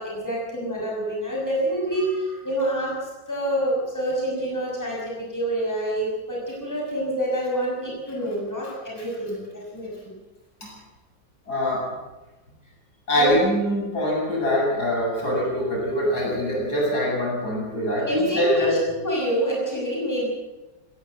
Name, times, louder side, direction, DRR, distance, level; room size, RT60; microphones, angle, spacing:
voice 1, 0.0-10.2 13.1-13.4 17.9-20.3, equal, 10° left, -3 dB, 6.1 m, -27 dB
voice 2, 11.5-12.0 13.1-18.8, equal, 55° left, -3 dB, 8.7 m, -24 dB
20.0 x 17.5 x 7.8 m, 1.1 s
omnidirectional pair, 2.0 m